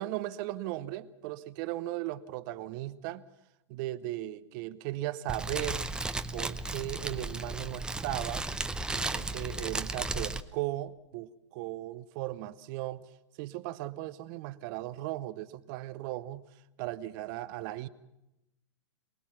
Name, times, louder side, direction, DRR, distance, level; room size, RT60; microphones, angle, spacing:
voice 1, 0.0-3.2 3.7-5.9 6.3-8.5 8.9-13.1 13.4-16.5 16.8-17.9, right 15 dB, 45° right, 13 dB, 0.8 m, -37 dB
Fire, 5.3-10.4, right 2 dB, 5° right, 0.7 m, -35 dB
24.0 x 19.5 x 5.9 m, 0.91 s
hypercardioid pair, 115°, 16 cm